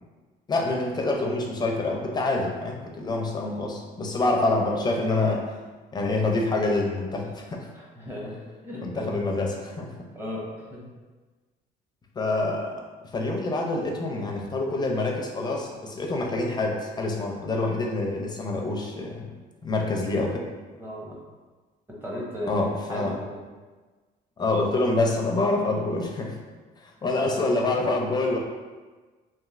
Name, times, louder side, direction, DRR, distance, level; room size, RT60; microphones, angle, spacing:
voice 1, 0.5-5.5 5.9-7.7 8.8-10.1 12.2-12.8 13.1-19.3 19.6-20.5 22.5-23.2 24.4-26.4 26.8-28.4, left 2 dB, 25° left, 1 dB, 0.4 m, -26 dB
voice 2, 7.7-9.1 10.1-10.9 20.8-21.2 21.9-23.4, equal, 10° right, -4 dB, 0.7 m, -36 dB
3.0 x 2.6 x 2.5 m, 1.3 s
cardioid pair, 110°, 17 cm